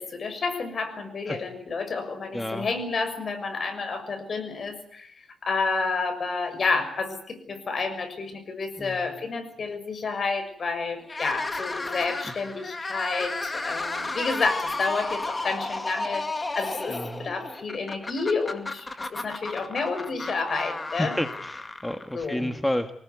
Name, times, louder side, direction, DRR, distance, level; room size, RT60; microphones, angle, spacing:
voice 1, 0.0-21.2 22.1-22.5, left 4 dB, 50° left, 8 dB, 6.6 m, -30 dB
voice 2, 2.3-2.7 8.8-9.1 15.7-15.9 16.9-17.3 20.9-22.9, left 1 dB, 10° left, 7 dB, 1.6 m, -31 dB
sound 1, 11.0-22.3, left 2 dB, 25° left, 2.2 m, -33 dB
25.5 x 19.5 x 9.6 m, 0.63 s
cardioid pair, 110°, 0 cm